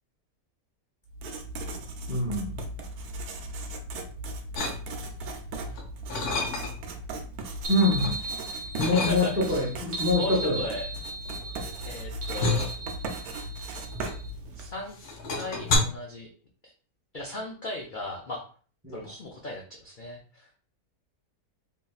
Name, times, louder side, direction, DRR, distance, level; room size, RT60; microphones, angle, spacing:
Writing, 1.1-14.9, right 1 dB, 85° right, 1.1 m, -38 dB
voice 1, 2.1-2.5 7.7-8.2 8.8-10.6 18.8-19.0, left 2 dB, 20° right, -2 dB, 0.4 m, -25 dB
sound 1, 4.5-5.2 5.7-7.0 7.4-8.2 8.8-9.6 10.4-14.6 14.9-15.8, left 3 dB, 90° left, 1.4 m, -31 dB
sound 2, 7.6-14.3, right 2 dB, 55° right, 0.8 m, -37 dB
voice 2, 8.8-9.7 10.1-10.9 11.9-12.7 14.6-15.0 15.3-16.3 17.1-18.4 18.9-20.5, left 2 dB, 70° left, -1 dB, 0.4 m, -36 dB
3.7 x 2.7 x 2.3 m, 0.41 s
omnidirectional pair, 1.6 m